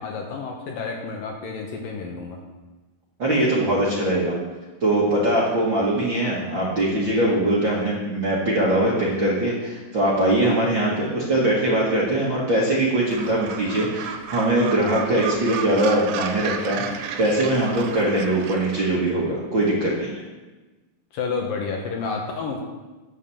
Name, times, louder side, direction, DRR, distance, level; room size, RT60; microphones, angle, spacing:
voice 1, 0.0-2.4 21.1-22.6, left 4 dB, 65° left, 1 dB, 2.6 m, -30 dB
voice 2, 3.2-4.4 4.8-20.1, right 1 dB, 40° right, -6 dB, 1.8 m, -22 dB
Gull seagull, 13.1-18.9, right 8 dB, 85° right, 3.1 m, -33 dB
10.5 x 8.2 x 7.1 m, 1.2 s
omnidirectional pair, 4.8 m